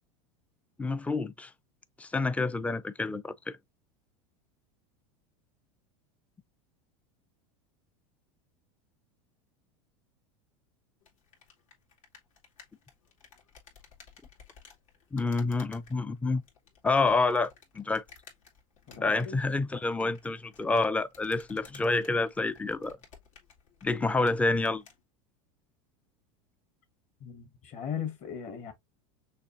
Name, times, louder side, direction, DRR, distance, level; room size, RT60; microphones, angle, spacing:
voice 1, 0.8-1.5 2.0-3.6 15.1-16.4 16.8-18.0 19.0-23.0 23.8-24.8, left 3 dB, 10° left, 0.4 m, -28 dB
sound 1, 11.0-25.0, left 6 dB, 80° left, 2.4 m, -56 dB
voice 2, 18.9-19.4 27.2-28.7, left 8 dB, 45° left, 2.0 m, -38 dB
6.4 x 2.8 x 2.6 m
supercardioid pair, 110°, 17 cm